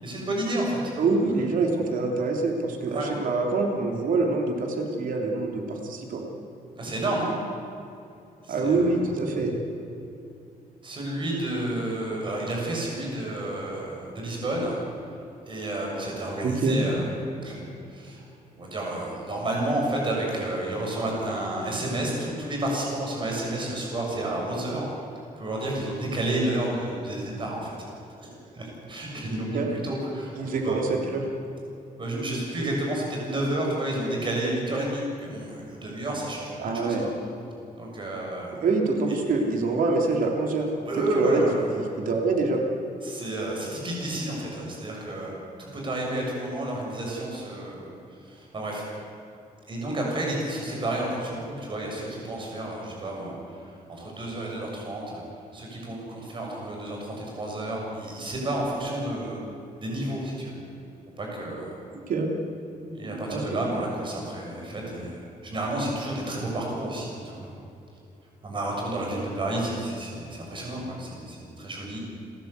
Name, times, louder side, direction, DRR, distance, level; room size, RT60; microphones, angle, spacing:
voice 1, 0.0-0.8 1.3-1.4 2.9-3.1 6.7-7.3 8.4-9.0 10.8-14.8 15.5-17.0 17.4-17.6 17.9-18.2 18.5-24.9 25.4-27.7 28.2-28.3 28.5-30.9 32.0-37.0 37.8-38.6 39.1-39.2 40.8-41.7 43.0-45.3 45.6-47.8 48.2-48.8 49.7-55.2 55.5-59.4 59.8-60.5 61.2-61.7 62.9-67.5 68.4-72.0, right 1 dB, 30° right, -2 dB, 6.6 m, -30 dB
voice 2, 1.0-6.2 8.5-9.5 16.4-16.8 29.5-29.7 30.4-31.3 36.6-37.1 38.6-40.7 41.1-41.4 41.7-42.6 61.9-62.3 63.3-63.7, right 3 dB, 65° right, 2 dB, 3.3 m, -25 dB
29.5 x 13.0 x 8.2 m, 2.6 s
wide cardioid pair, 165°, 15 cm